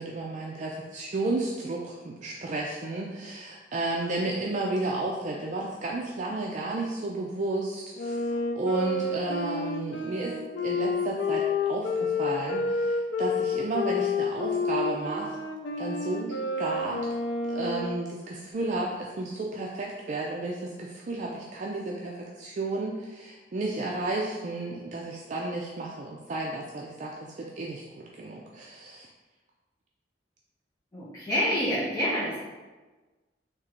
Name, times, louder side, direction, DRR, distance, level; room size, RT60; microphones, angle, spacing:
voice 1, 0.0-10.3 10.6-15.4 15.8-17.0 17.4-27.8 28.2-29.1, right 2 dB, 45° right, -2 dB, 0.4 m, -32 dB
Wind instrument woodwind instrument, 8.0-18.0, left 3 dB, 90° left, 0.4 m, -29 dB
voice 2, 30.9-32.4, equal, 20° left, -9 dB, 0.8 m, -27 dB
3.7 x 2.9 x 4.3 m, 1.2 s
head